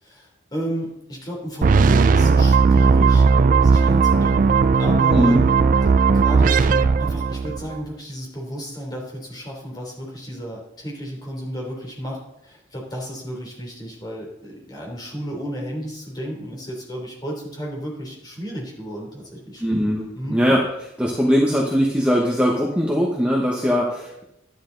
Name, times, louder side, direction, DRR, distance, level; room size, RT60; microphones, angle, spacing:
voice 1, 0.0-19.6 20.1-20.4, equal, 20° left, -2 dB, 3.3 m, -33 dB
sound 1, 1.6-7.8, right 4 dB, 45° right, 0.3 m, -16 dB
voice 2, 19.6-20.6 21.0-24.2, equal, 5° right, -2 dB, 1.1 m, -20 dB
11.5 x 9.9 x 4.0 m, 0.81 s
head